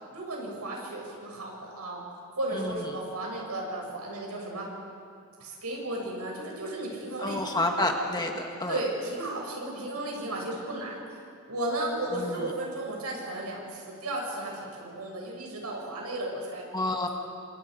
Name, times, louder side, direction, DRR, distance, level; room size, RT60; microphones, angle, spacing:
voice 1, 0.1-2.0 2.3-4.7 5.4-7.9 8.7-11.0 11.5-16.6, right 1 dB, 85° right, -1 dB, 7.3 m, -34 dB
voice 2, 2.5-2.8 7.2-8.8 12.1-12.5 16.7-17.1, left 2 dB, 20° left, 2 dB, 1.6 m, -29 dB
29.5 x 26.0 x 5.3 m, 2.4 s
head